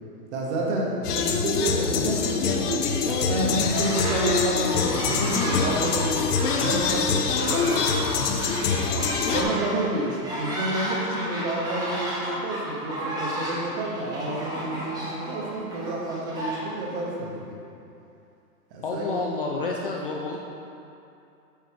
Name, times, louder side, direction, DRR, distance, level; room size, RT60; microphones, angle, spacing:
voice 1, 0.3-6.2 6.4-7.9 8.8-17.6 18.7-19.1, right 1 dB, 45° right, -3 dB, 1.5 m, -30 dB
sound 1, 1.0-9.4, left 5 dB, 70° left, 0.8 m, -25 dB
sound 2, 3.4-4.4 4.7-17.0, equal, 10° right, 1.0 m, -32 dB
voice 2, 18.8-20.4, left 3 dB, 40° left, -1 dB, 0.4 m, -29 dB
8.4 x 4.1 x 4.8 m, 2.7 s
hypercardioid pair, 145°, 49 cm